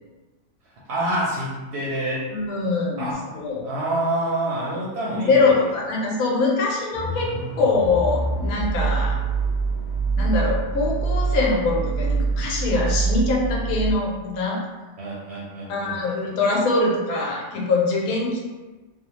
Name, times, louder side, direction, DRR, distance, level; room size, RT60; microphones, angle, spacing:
voice 1, 0.9-2.3 3.0-3.2 3.6-5.5 15.0-16.1, right 1 dB, 65° right, -5 dB, 0.7 m, -27 dB
voice 2, 2.3-3.7 5.1-7.3 7.6-9.2 10.2-14.6 15.7-18.4, left 3 dB, 85° left, -2 dB, 1.1 m, -23 dB
sound 1, 6.9-13.9, right 4 dB, 55° left, 0.4 m, -25 dB
2.6 x 2.1 x 2.9 m, 1.2 s
omnidirectional pair, 1.5 m